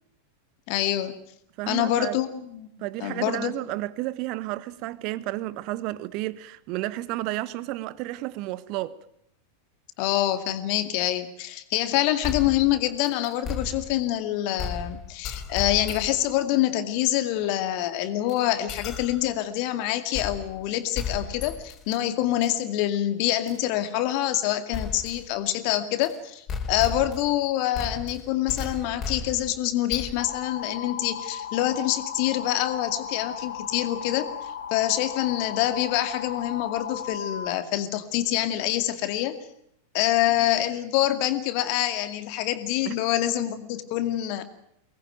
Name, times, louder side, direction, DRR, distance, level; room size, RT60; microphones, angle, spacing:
voice 1, 0.7-1.1 1.7-2.7 3.0-3.5 10.0-34.3 34.7-39.4 39.9-44.4, left 13 dB, 45° left, 2.3 m, -26 dB
voice 2, 1.6-2.2 2.8-9.0 42.8-42.9, right 17 dB, 40° right, 1.3 m, -32 dB
sound 1, 12.2-14.2 14.6-16.3 18.3-18.4 18.7-19.3 20.1-20.7 20.9-22.0 22.4-22.5 23.5-23.6 24.7-25.3 26.0-26.1 26.5-27.4 27.7-30.4, left 5 dB, 25° left, 4.5 m, -35 dB
sound 2, 30.2-37.5, left 8 dB, 65° left, 2.2 m, -36 dB
24.0 x 20.0 x 9.3 m
figure-of-eight pair, 90°, 0 cm